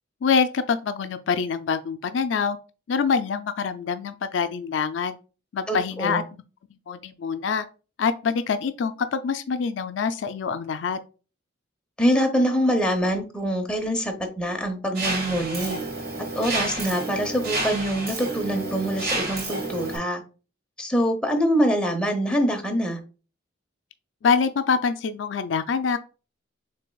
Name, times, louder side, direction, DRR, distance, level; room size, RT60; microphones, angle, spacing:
voice 1, 0.2-2.6 2.9-5.2 5.5-6.4 6.9-7.6 8.0-11.0 24.2-26.0, left 5 dB, 75° left, 0.4 m, -25 dB
voice 2, 5.7-6.2 12.0-15.8 16.3-20.2 20.8-23.0, equal, 5° left, 0.9 m, -24 dB
Mechanisms, 15.0-20.0, right 2 dB, 55° right, 1.6 m, -30 dB
6.6 x 3.3 x 2.3 m
head